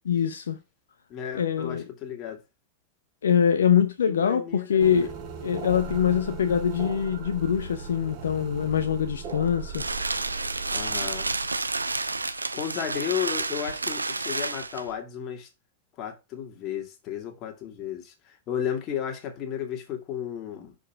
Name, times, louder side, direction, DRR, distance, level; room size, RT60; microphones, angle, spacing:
voice 1, 0.1-0.6 1.3-1.8 3.2-5.1 5.4-9.8, left 8 dB, 65° left, 0.7 m, -24 dB
voice 2, 1.1-2.4 4.1-5.1 10.7-11.3 12.5-15.5 16.0-20.8, left 9 dB, 35° left, 2.1 m, -34 dB
sound 1, 4.8-12.7, right 5 dB, 40° right, 2.1 m, -38 dB
sound 2, 9.2-14.9, right 3 dB, 80° right, 0.7 m, -30 dB
6.5 x 5.4 x 4.5 m
figure-of-eight pair, 90°, 0 cm